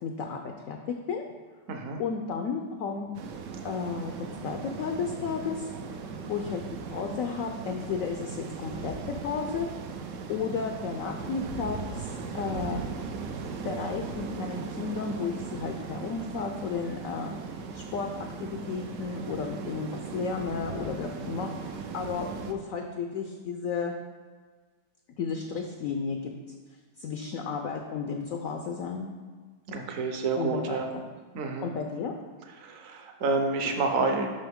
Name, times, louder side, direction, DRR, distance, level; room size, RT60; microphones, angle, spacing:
voice 1, 0.0-1.3 2.0-3.1 3.6-5.7 6.0-9.7 10.3-12.9 13.6-23.9 25.2-26.3 27.0-29.1 30.4-31.0 31.6-32.1, left 5 dB, 75° left, 4 dB, 0.7 m, -33 dB
voice 2, 1.7-2.0 29.7-30.9 31.3-31.7 32.6-34.3, right 3 dB, 60° right, 4 dB, 1.0 m, -29 dB
sound 1, 3.1-22.5, right 5 dB, 85° right, 0.6 m, -38 dB
6.8 x 5.7 x 3.6 m, 1.5 s
omnidirectional pair, 1.9 m